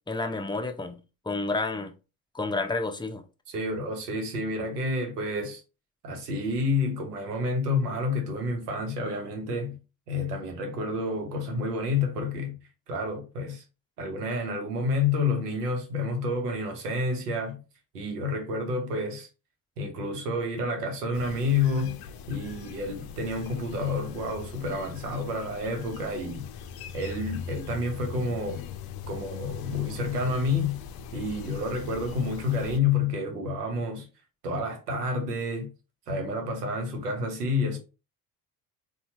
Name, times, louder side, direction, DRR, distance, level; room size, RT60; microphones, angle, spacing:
voice 1, 0.1-1.0 1.3-1.9 2.3-3.2, left 3 dB, 10° left, 0.6 m, -30 dB
voice 2, 3.5-5.6 6.0-9.8 10.1-12.6 12.9-13.6 14.0-17.6 17.9-19.3 19.8-22.0 22.3-26.5 26.9-28.6 29.1-30.8 31.1-34.1 34.4-35.7 36.1-37.8, left 3 dB, 90° right, 0.9 m, -29 dB
sound 1, 21.1-32.8, left 7 dB, 55° left, 0.6 m, -41 dB
4.1 x 2.3 x 2.9 m
hypercardioid pair, 50°, 46 cm